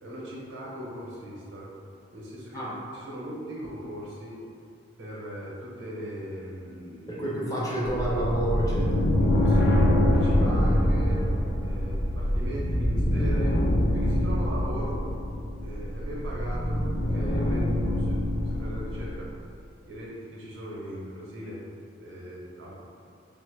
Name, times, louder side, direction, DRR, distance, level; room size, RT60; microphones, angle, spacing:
voice 1, 0.0-1.7 2.1-2.6 2.9-4.4 5.0-7.4 9.2-11.3 11.6-13.6 13.9-15.0 15.6-18.2 18.4-19.3 19.9-21.6 22.0-22.7, equal, 85° right, -5 dB, 0.7 m, -38 dB
voice 2, 7.1-9.1, right 1 dB, 20° left, -6 dB, 0.5 m, -29 dB
sound 1, 7.8-19.1, left 1 dB, 80° left, 0.5 m, -25 dB
3.2 x 2.1 x 3.2 m, 2.4 s
head